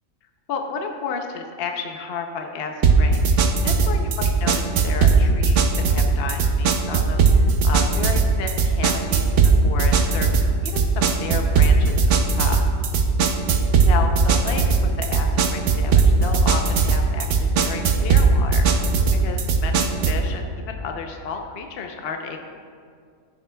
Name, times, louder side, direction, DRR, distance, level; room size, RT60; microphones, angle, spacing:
voice 1, 0.5-5.6 5.9-9.2 9.6-12.0 12.3-12.6 13.8-18.7 19.2-22.4, left 5 dB, 55° left, 3 dB, 0.8 m, -32 dB
sound 1, 2.8-20.3, right 4 dB, 70° right, 1.0 m, -18 dB
15.0 x 7.6 x 2.2 m, 2.2 s
omnidirectional pair, 1.4 m